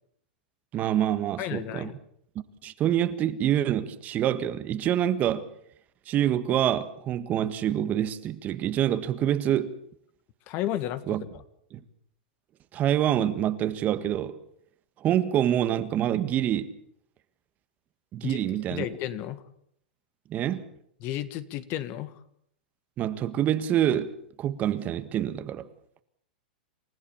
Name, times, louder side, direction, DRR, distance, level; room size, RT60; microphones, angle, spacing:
voice 1, 0.7-1.9 2.6-5.4 6.1-9.7 11.1-11.2 12.7-14.4 15.0-16.7 18.1-18.8 20.3-20.7 23.0-25.7, right 11 dB, 35° right, 1.6 m, -26 dB
voice 2, 1.4-1.9 10.5-11.2 18.2-19.4 21.0-22.1, left 12 dB, 45° left, 1.8 m, -33 dB
28.5 x 15.0 x 7.2 m
hypercardioid pair, 115°, 5 cm